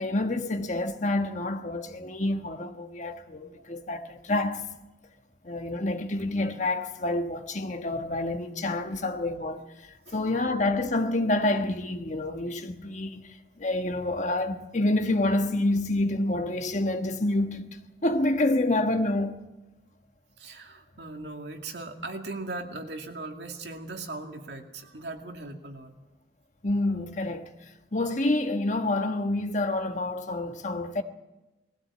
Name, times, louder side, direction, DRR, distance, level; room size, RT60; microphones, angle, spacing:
voice 1, 0.0-4.6 5.4-17.7 18.0-19.4 26.6-27.5 27.9-31.0, left 2 dB, 45° left, 1.3 m, -28 dB
voice 2, 20.4-25.9, right 2 dB, 70° right, 2.4 m, -39 dB
20.5 x 16.0 x 8.6 m
head